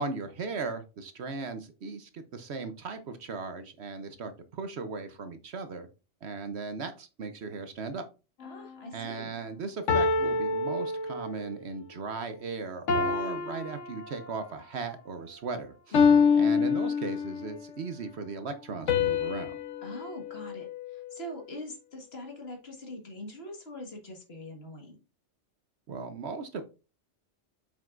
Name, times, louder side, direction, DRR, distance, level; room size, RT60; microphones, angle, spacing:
voice 1, 0.0-5.9 6.2-8.1 8.9-15.7 16.3-19.6 25.9-26.6, right 4 dB, 60° right, 9 dB, 1.0 m, -37 dB
sound 1, 8.4-8.7 9.9-11.5 12.9-14.5 15.9-17.6 18.9-21.3, left 5 dB, 75° left, 1.3 m, -27 dB
voice 2, 8.4-9.3 15.9-16.3 19.8-25.0, left 1 dB, 55° left, 2 dB, 2.0 m, -42 dB
7.4 x 5.7 x 2.5 m, 0.31 s
omnidirectional pair, 1.3 m